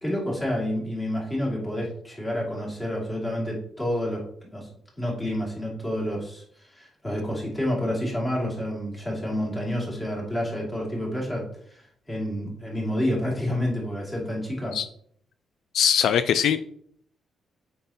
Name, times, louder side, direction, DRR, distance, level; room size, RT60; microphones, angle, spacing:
voice 1, 0.0-4.2 4.5-4.7 5.0-14.7, left 1 dB, 15° left, -3 dB, 2.4 m, -29 dB
voice 2, 15.7-16.6, left 8 dB, 75° left, 11 dB, 0.3 m, -21 dB
7.5 x 5.3 x 2.8 m, 0.63 s
cardioid pair, 145°, 0 cm